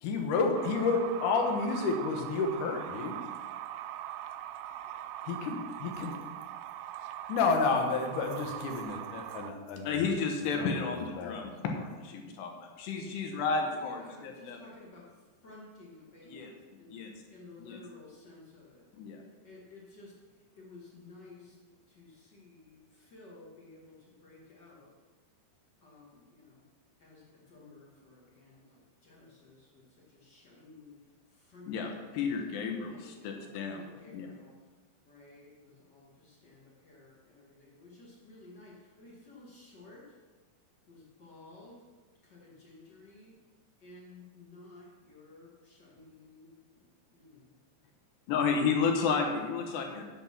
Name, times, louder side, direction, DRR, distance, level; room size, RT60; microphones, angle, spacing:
voice 1, 0.0-3.2 5.3-6.1 7.3-10.0 10.5-11.5, left 4 dB, 90° left, 2 dB, 1.7 m, -30 dB
sound 1, 0.6-9.5, right 11 dB, 80° right, 2.6 m, -41 dB
voice 2, 9.8-14.6 16.2-16.5 16.9-17.1 17.6-17.8 19.0-19.2 31.7-33.8 34.1-34.3 48.3-50.0, left 5 dB, 70° left, 3 dB, 3.1 m, -32 dB
voice 3, 13.8-15.1 15.4-18.8 19.4-20.1 20.6-21.5 21.9-22.8 23.1-24.9 25.8-26.6 27.0-28.6 29.0-29.8 30.2-31.0 31.5-32.1 32.9-34.5 35.0-40.0 40.9-41.7 42.3-43.3 43.8-46.5 47.1-47.5 50.0-50.1, left 2 dB, 45° left, -4 dB, 1.4 m, -54 dB
8.8 x 8.6 x 5.9 m, 1.3 s
omnidirectional pair, 5.3 m